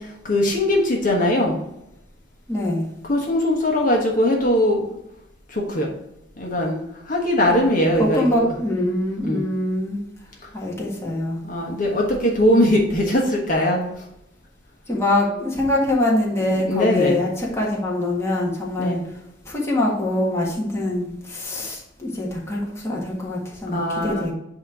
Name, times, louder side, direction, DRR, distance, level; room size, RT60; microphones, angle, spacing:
voice 1, 0.2-1.5 3.0-4.9 5.5-5.9 6.4-8.4 9.2-9.4 11.4-13.8 16.7-17.2 18.8-19.0 23.7-24.3, left 1 dB, 45° left, -1 dB, 1.3 m, -20 dB
voice 2, 2.5-2.9 8.0-10.0 10.5-11.4 14.9-19.0 19.4-24.3, left 1 dB, 15° left, -4 dB, 1.5 m, -24 dB
8.5 x 3.0 x 4.8 m, 0.83 s
head